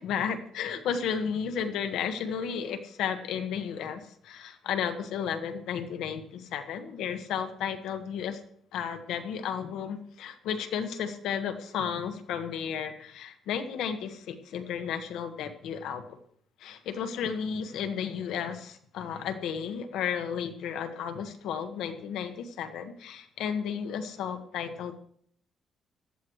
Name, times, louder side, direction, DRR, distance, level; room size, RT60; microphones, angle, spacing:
voice 1, 0.0-8.4 8.7-16.2 16.6-25.0, left 7 dB, 85° left, 8 dB, 1.5 m, -33 dB
18.0 x 13.5 x 3.2 m, 0.63 s
cardioid pair, 90°, 0 cm